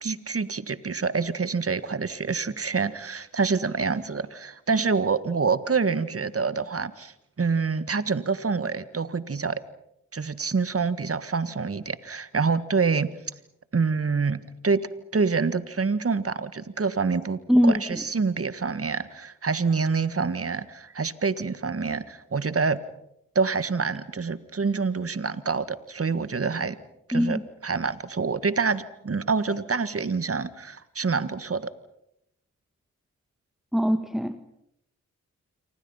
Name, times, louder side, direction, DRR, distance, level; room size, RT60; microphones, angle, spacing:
voice 1, 0.0-9.6 10.1-13.1 13.7-14.9 15.1-22.8 23.4-26.8 27.1-31.7, right 4 dB, 45° right, 14 dB, 1.7 m, -26 dB
voice 2, 17.5-18.0 27.1-27.4 33.7-34.4, equal, ahead, 9 dB, 1.6 m, -22 dB
28.0 x 24.5 x 5.7 m, 0.79 s
supercardioid pair, 40°, 33 cm